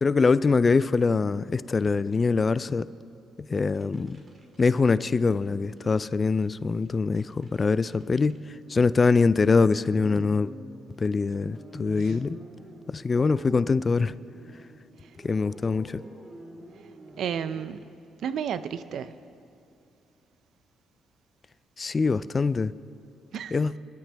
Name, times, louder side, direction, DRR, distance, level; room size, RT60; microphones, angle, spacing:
voice 1, 0.0-2.9 3.5-4.2 4.6-8.3 8.7-10.5 11.0-12.4 12.9-14.2 15.2-16.0 21.8-22.7 23.5-23.7, left 4 dB, 30° left, 0.4 m, -23 dB
sound 1, 3.7-5.5 5.8-6.0 6.3-6.6 6.9-17.7, right 1 dB, 35° right, 2.2 m, -47 dB
voice 2, 17.2-17.9 18.2-19.1 23.3-23.5, right 8 dB, 70° right, 0.5 m, -32 dB
27.5 x 11.5 x 3.4 m
cardioid pair, 90°, 0 cm